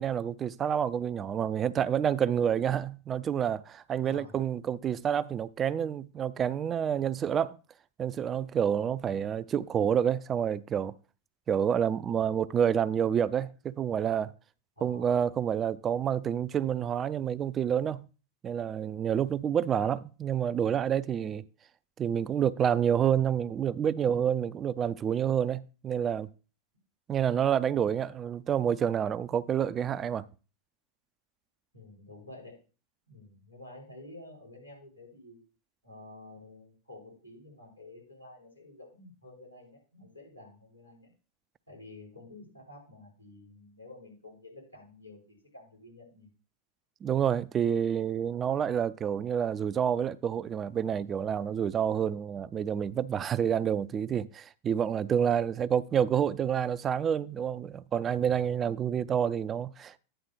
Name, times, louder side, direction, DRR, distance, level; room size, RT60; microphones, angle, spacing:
voice 1, 0.0-7.6 8.0-10.9 11.5-14.3 14.8-18.1 18.4-21.4 22.0-26.3 27.1-30.2 47.0-60.0, right 8 dB, 25° right, 0.3 m, -28 dB
voice 2, 4.0-4.4 9.0-9.3 14.8-15.1 31.7-32.6 33.1-35.4 35.8-41.1 41.7-46.3, left 2 dB, 90° left, 4.5 m, -50 dB
9.0 x 3.6 x 6.8 m
figure-of-eight pair, 90°, 0 cm